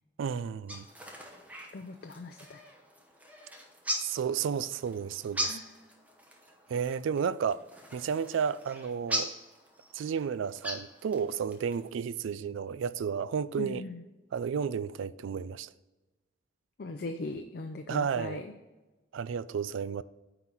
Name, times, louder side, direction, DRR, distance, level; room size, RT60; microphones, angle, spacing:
voice 1, 0.2-0.9 4.0-5.6 6.7-7.6 7.9-9.3 9.9-13.8 14.3-15.7 17.9-18.4 19.1-20.0, right 7 dB, 80° right, 0.3 m, -32 dB
sound 1, 0.7-11.9, equal, 10° right, 0.9 m, -40 dB
voice 2, 1.7-2.6 5.4-5.7 13.6-14.0 16.8-18.5, left 2 dB, 50° left, 0.4 m, -39 dB
9.5 x 4.0 x 4.5 m
head